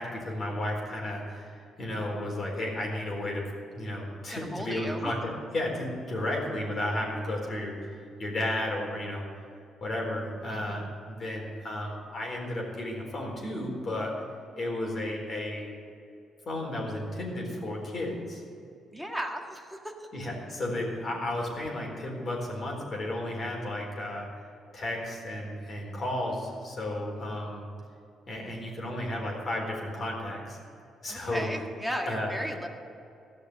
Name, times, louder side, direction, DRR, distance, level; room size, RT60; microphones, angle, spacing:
voice 1, 0.0-3.5 3.7-9.2 9.8-14.1 14.6-15.8 16.5-18.4 20.1-27.6 28.3-30.6 31.0-31.5 32.1-32.4, left 1 dB, 45° left, -1 dB, 4.2 m, -33 dB
voice 2, 4.3-5.1 10.5-10.9 18.9-20.1 31.1-32.7, equal, ahead, 1 dB, 1.7 m, -36 dB
15.0 x 6.4 x 9.6 m, 2.5 s
cardioid pair, 95°, 0 cm